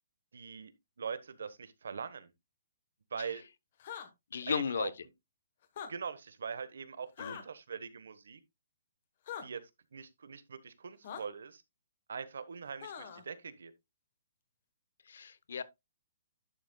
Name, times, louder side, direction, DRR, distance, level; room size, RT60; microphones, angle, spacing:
voice 1, 0.3-0.7 1.0-2.3 3.1-3.4 4.5-4.9 5.9-8.4 9.4-9.6 9.9-11.6 12.1-13.7, right 6 dB, 75° right, 1.1 m, -42 dB
sound 1, 3.8-4.1 5.6-5.9 7.2-7.4 9.3-9.4 11.0-11.2 12.8-13.2, left 8 dB, 35° left, 1.2 m, -42 dB
voice 2, 4.3-4.9 7.2-7.4 15.1-15.6, left 6 dB, 65° left, 0.8 m, -35 dB
11.0 x 6.6 x 2.3 m
hypercardioid pair, 180°, 0 cm